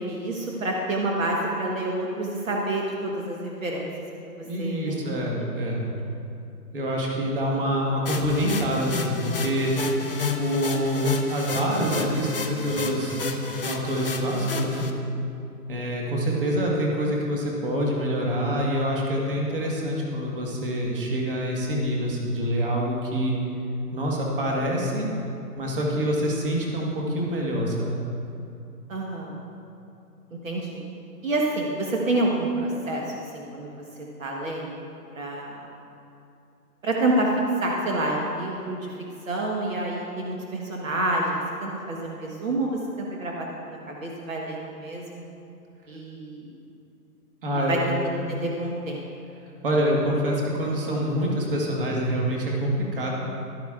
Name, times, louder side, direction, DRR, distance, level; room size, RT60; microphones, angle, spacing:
voice 1, 0.0-3.9 4.6-5.1 28.9-29.4 30.4-30.8 31.2-33.0 33.3-33.8 34.2-34.8 35.1-35.6 36.8-37.3 37.6-38.9 39.3-45.2 45.9-46.6 47.7-49.0, right 1 dB, 55° right, -1 dB, 1.3 m, -28 dB
voice 2, 4.4-5.9 6.7-9.7 10.4-13.2 13.5-14.8 15.7-23.3 23.9-25.1 25.6-28.0 47.4-47.8 49.6-53.1, equal, 35° right, -2 dB, 1.6 m, -26 dB
sound 1, 8.0-14.9, left 4 dB, 35° left, 0.5 m, -31 dB
14.5 x 12.0 x 2.5 m, 2.7 s
hypercardioid pair, 175°, 47 cm